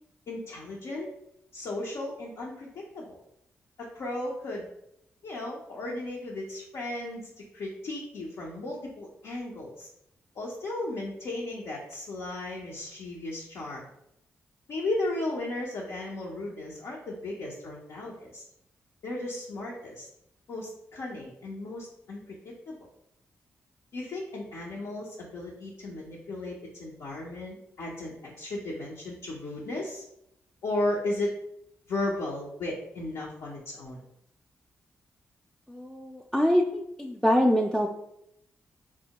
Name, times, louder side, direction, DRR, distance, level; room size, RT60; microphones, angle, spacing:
voice 1, 0.3-1.1 1.5-3.2 3.8-4.7 5.2-9.9 10.4-13.9 14.7-18.4 19.0-20.1 20.5-22.7 23.9-30.0 30.6-31.3 31.9-34.0, left 2 dB, 70° left, -4 dB, 0.7 m, -35 dB
voice 2, 35.7-37.9, equal, 5° left, -1 dB, 0.4 m, -24 dB
4.5 x 2.1 x 2.9 m, 0.76 s
hypercardioid pair, 40°, 6 cm